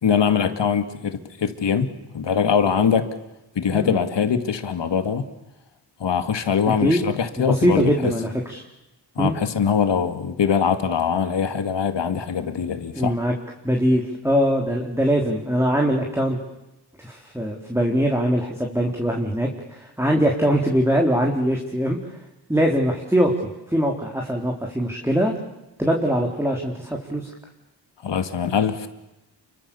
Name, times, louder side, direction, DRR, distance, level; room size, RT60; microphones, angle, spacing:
voice 1, 0.0-3.1 3.6-5.2 6.0-8.1 9.2-13.2 28.0-28.9, left 7 dB, 85° left, 9 dB, 2.3 m, -22 dB
voice 2, 7.5-8.6 9.2-9.3 13.0-13.3 13.6-16.4 17.0-22.0 22.5-25.3 25.8-27.3, equal, 5° right, 0 dB, 3.9 m, -22 dB
29.5 x 24.0 x 7.1 m, 0.94 s
cardioid pair, 70°, 42 cm